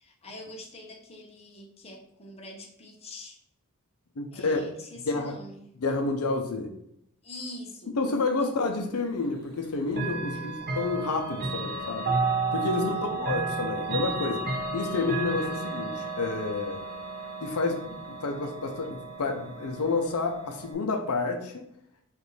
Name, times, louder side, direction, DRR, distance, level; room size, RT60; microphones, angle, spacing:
voice 1, 0.0-3.4 4.3-5.7 7.2-7.9 8.4-8.6 10.3-10.8 12.7-13.2, left 1 dB, 30° left, 0 dB, 0.7 m, -44 dB
voice 2, 4.2-4.6 5.0-5.4 5.8-6.7 8.0-12.1 12.5-16.8 17.4-21.7, left 3 dB, 80° left, 5 dB, 0.6 m, -29 dB
Chime / Clock, 9.9-20.7, right 3 dB, 45° right, 0.7 m, -32 dB
5.1 x 2.6 x 3.2 m, 0.73 s
head